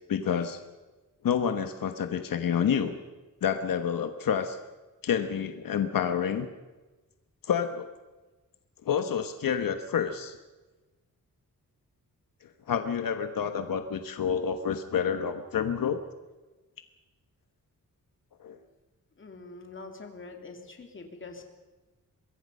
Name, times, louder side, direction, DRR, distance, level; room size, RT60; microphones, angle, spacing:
voice 1, 0.1-0.6 1.2-3.0 3.4-4.6 5.0-6.5 7.5-7.9 8.8-10.3 12.7-16.0 18.4-18.6, left 7 dB, 85° left, 8 dB, 1.3 m, -28 dB
voice 2, 19.2-21.4, left 3 dB, 35° left, 4 dB, 2.8 m, -44 dB
24.0 x 21.0 x 5.5 m, 1.2 s
wide cardioid pair, 170°, 33 cm